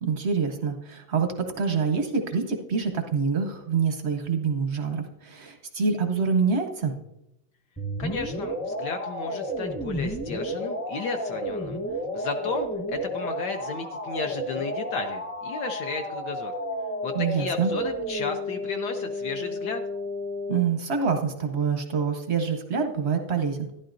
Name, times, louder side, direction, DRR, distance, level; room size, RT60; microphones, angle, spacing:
voice 1, 0.0-7.0 17.1-17.7 20.5-23.7, right 5 dB, 60° right, 4 dB, 0.7 m, -26 dB
sound 1, 7.8-20.6, equal, 15° left, 0.7 m, -32 dB
voice 2, 8.0-11.8 12.1-16.5 17.0-19.8, left 4 dB, 70° left, 5 dB, 1.1 m, -33 dB
12.0 x 11.0 x 2.6 m, 0.86 s
omnidirectional pair, 2.2 m